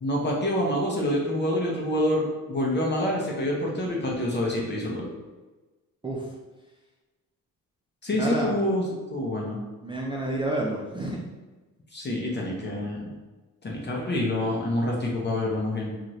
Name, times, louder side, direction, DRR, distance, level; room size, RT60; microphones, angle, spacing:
voice 1, 0.0-5.1 8.0-9.6 11.9-13.1 13.6-15.9, left 1 dB, 30° left, -2 dB, 0.7 m, -27 dB
voice 2, 8.2-8.5 9.8-11.2, right 1 dB, 15° right, -3 dB, 0.4 m, -29 dB
2.6 x 2.4 x 3.1 m, 1.2 s
cardioid pair, 75°, 36 cm